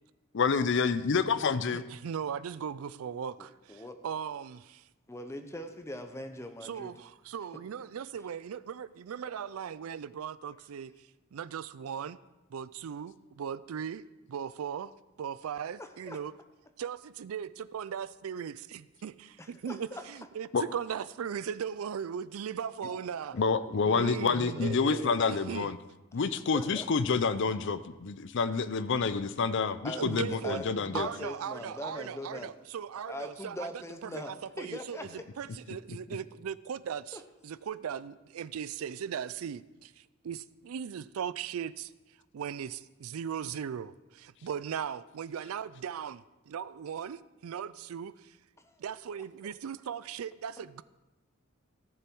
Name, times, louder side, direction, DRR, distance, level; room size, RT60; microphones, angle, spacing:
voice 1, 0.3-1.8 20.5-20.6 23.3-25.8 26.1-31.1, left 5 dB, 60° left, 13 dB, 0.5 m, -28 dB
voice 2, 1.7-4.8 6.6-10.9 11.3-12.2 12.5-16.3 16.8-23.4 23.8-25.7 30.0-30.6 30.9-33.7 34.0-41.9 42.3-48.4 48.8-50.8, right 7 dB, 85° right, 17 dB, 0.4 m, -38 dB
voice 3, 3.4-4.0 5.1-6.9 15.8-16.2 19.4-20.0 22.8-23.0 23.3-23.7 24.3-25.2 26.5-26.9 29.8-32.5 33.1-35.2 37.1-37.2 48.6-48.7 49.4-49.5, left 1 dB, 15° left, 7 dB, 0.8 m, -42 dB
14.5 x 7.0 x 4.5 m, 1.1 s
head